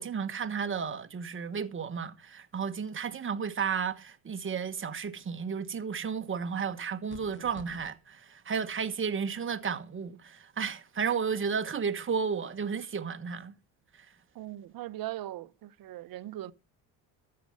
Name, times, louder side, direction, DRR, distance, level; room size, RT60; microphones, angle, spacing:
voice 1, 0.0-13.5, right 6 dB, 30° right, 1.3 m, -33 dB
sound 1, 7.1-7.9, left 4 dB, 30° left, 1.8 m, -49 dB
voice 2, 14.3-16.5, right 14 dB, 55° right, 0.9 m, -39 dB
13.0 x 7.7 x 5.4 m
supercardioid pair, 80°, 41 cm